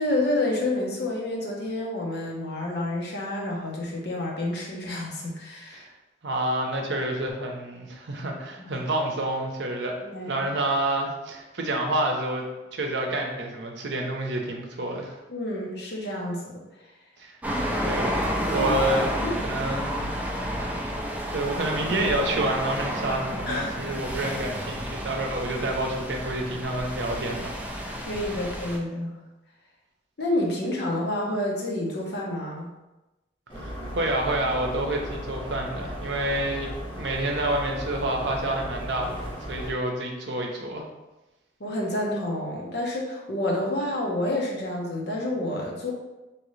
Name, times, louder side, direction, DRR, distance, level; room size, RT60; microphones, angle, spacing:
voice 1, 0.0-5.8 8.6-8.7 10.1-10.4 15.3-16.6 18.5-18.7 19.2-19.4 23.5-23.8 28.1-29.1 30.2-32.7 41.6-45.9, left 1 dB, 60° left, -2 dB, 0.8 m, -29 dB
voice 2, 6.2-15.2 17.2-17.4 17.8-19.1 19.4-20.1 20.6-20.9 21.3-28.0 33.5-40.9, right 1 dB, 65° right, 2 dB, 0.7 m, -29 dB
sound 1, 17.4-28.8, equal, 10° right, 0.4 m, -30 dB
sound 2, 33.5-39.7, equal, 25° left, 0.9 m, -36 dB
3.7 x 2.9 x 3.1 m, 1.0 s
head